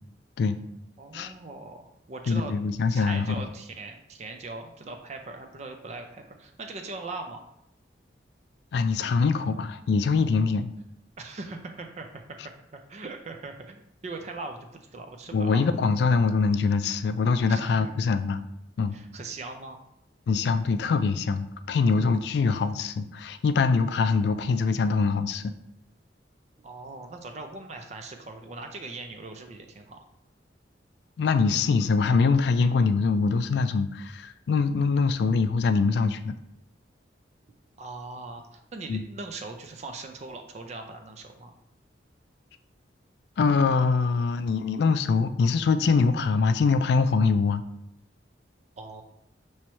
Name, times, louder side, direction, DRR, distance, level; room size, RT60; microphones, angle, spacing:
voice 1, 1.0-2.5 2.9-7.4 11.2-12.2 12.7-15.6 17.5-17.9 18.9-19.8 26.6-30.0 37.8-41.5 48.8-49.0, right 3 dB, 40° right, 5 dB, 0.4 m, -40 dB
voice 2, 2.3-3.4 8.7-10.7 15.3-18.4 18.8-19.0 20.3-25.4 31.2-36.4 38.9-39.0 43.4-47.6, left 4 dB, 60° left, 11 dB, 0.3 m, -23 dB
5.7 x 3.1 x 3.0 m, 0.79 s
head